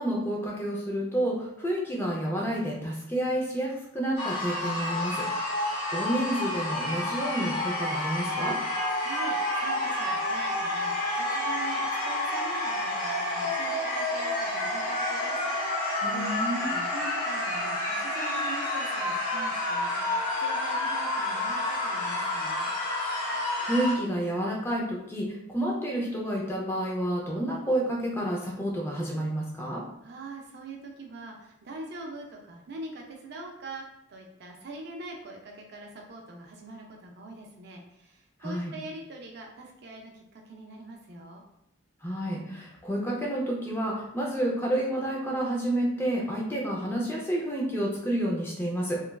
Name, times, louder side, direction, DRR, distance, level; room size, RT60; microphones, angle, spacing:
voice 1, 0.0-5.2 5.6-8.6 16.0-16.7 23.6-29.8 38.4-38.7 42.0-49.0, right 1 dB, 10° left, -3 dB, 0.4 m, -29 dB
sound 1, 4.2-23.9, left 1 dB, 40° left, 0.7 m, -29 dB
voice 2, 9.0-22.7 30.0-41.4, right 2 dB, 50° right, 1 dB, 0.4 m, -43 dB
3.0 x 2.3 x 2.2 m, 0.81 s
head